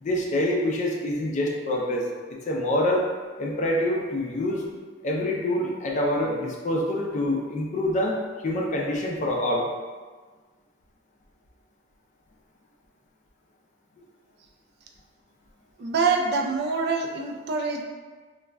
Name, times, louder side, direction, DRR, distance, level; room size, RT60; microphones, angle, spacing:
voice 1, 0.0-3.1 3.4-4.6 5.0-8.2 8.4-9.7, left 1 dB, 40° left, -1 dB, 0.4 m, -26 dB
voice 2, 15.8-17.8, right 4 dB, 60° right, 2 dB, 0.3 m, -25 dB
2.3 x 2.1 x 3.4 m, 1.4 s
head